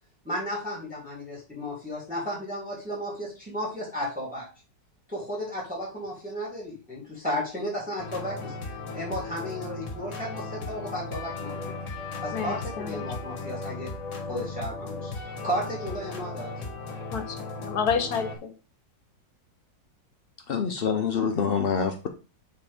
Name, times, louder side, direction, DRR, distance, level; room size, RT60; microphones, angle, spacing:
voice 1, 0.2-4.5 5.1-8.5 8.9-11.8 12.2-13.9 14.3-15.1 15.4-16.5, equal, 5° right, -3 dB, 3.2 m, -34 dB
sound 1, 8.0-18.4, left 3 dB, 45° left, 1.6 m, -36 dB
voice 2, 12.3-13.0 17.1-18.5, left 6 dB, 60° left, 8 dB, 1.4 m, -30 dB
voice 3, 20.5-22.1, left 6 dB, 80° left, 5 dB, 0.5 m, -26 dB
8.3 x 4.4 x 3.5 m, 0.32 s
omnidirectional pair, 1.9 m